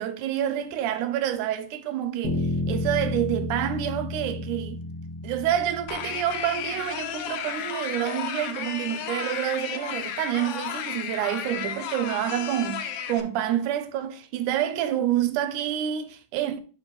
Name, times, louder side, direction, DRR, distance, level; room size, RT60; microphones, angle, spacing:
voice 1, 0.0-4.8 5.2-16.6, right 11 dB, 80° right, 2.2 m, -28 dB
sound 1, 2.2-6.6, left 1 dB, 35° left, 0.8 m, -31 dB
sound 2, 5.9-13.2, left 8 dB, 85° left, 1.3 m, -33 dB
9.4 x 4.5 x 3.2 m
omnidirectional pair, 3.6 m